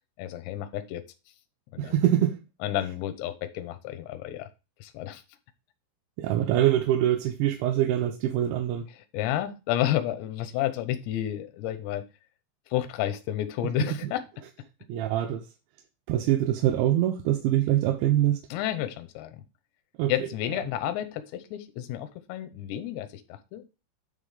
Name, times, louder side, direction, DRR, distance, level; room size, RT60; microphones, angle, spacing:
voice 1, 0.2-1.0 1.7-2.0 2.6-4.5 4.8-5.2 9.1-12.0 12.7-14.2 18.5-19.4 20.1-23.6, left 12 dB, 75° left, 2.9 m, -31 dB
voice 2, 1.8-2.4 6.2-8.9 13.8-14.1 14.9-15.5 16.1-18.4 20.0-20.3, right 12 dB, 80° right, 2.8 m, -24 dB
9.7 x 3.8 x 4.9 m
omnidirectional pair, 5.6 m